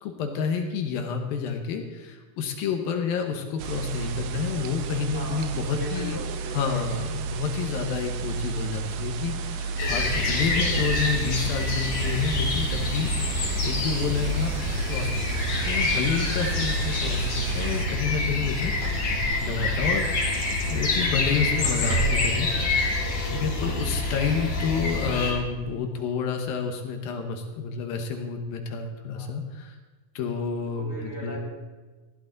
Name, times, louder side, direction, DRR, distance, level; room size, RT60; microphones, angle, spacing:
voice 1, 0.0-6.2 6.5-20.1 20.7-23.0 23.2-29.8 30.1-31.4, left 6 dB, 80° left, 4 dB, 3.0 m, -29 dB
sound 1, 3.6-17.9, right 5 dB, 75° right, 2.3 m, -32 dB
voice 2, 5.1-7.3 23.3-23.6 29.1-29.3 30.5-31.4, equal, 5° right, -5 dB, 5.3 m, -39 dB
sound 2, 9.8-25.3, left 2 dB, 45° left, 3.1 m, -27 dB
sound 3, 18.1-18.2 18.6-20.6 21.0-21.3 21.6-22.4 23.5-23.6, right 3 dB, 55° right, 3.9 m, -32 dB
19.5 x 13.5 x 4.0 m, 1.3 s
omnidirectional pair, 4.1 m